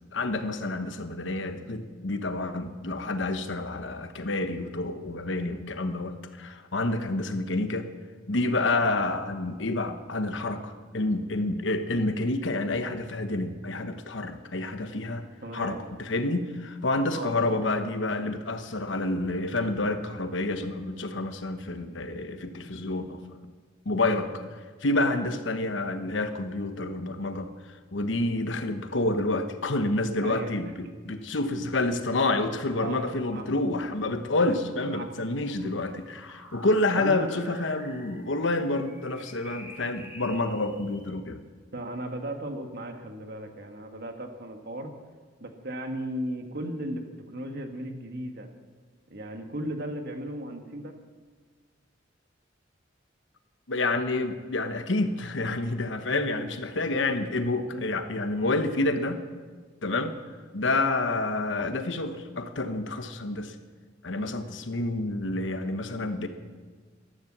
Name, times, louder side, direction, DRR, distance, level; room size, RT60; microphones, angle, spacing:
voice 1, 0.1-7.9 8.3-15.3 15.5-23.4 23.8-24.5 24.8-27.5 27.9-41.4 53.7-59.2 59.8-60.1 60.5-63.6 64.0-66.3, left 2 dB, 70° left, 8 dB, 1.1 m, -28 dB
voice 2, 15.4-15.8 17.1-17.4 30.2-30.6 32.8-33.4 34.9-35.1 36.9-37.3 41.7-44.9 45.4-48.5 49.1-50.9 57.7-57.9 64.2-64.4, right 1 dB, 55° right, 5 dB, 1.5 m, -36 dB
sound 1, 33.7-41.1, equal, 15° right, 2.6 m, -49 dB
13.0 x 12.0 x 7.3 m, 1.5 s
head